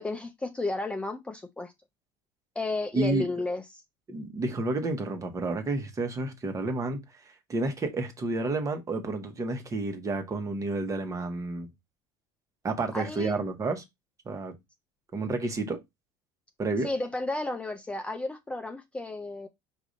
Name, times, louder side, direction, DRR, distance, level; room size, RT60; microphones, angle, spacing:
voice 1, 0.0-1.7 2.6-3.8 12.9-13.4 16.8-19.5, left 2 dB, 10° left, 0.5 m, -33 dB
voice 2, 2.9-3.3 4.1-7.0 7.5-11.7 12.6-13.8 14.2-14.5 15.1-15.8 16.6-16.9, right 3 dB, 30° right, 1.2 m, -30 dB
4.9 x 2.6 x 4.0 m
supercardioid pair, 105°, 11 cm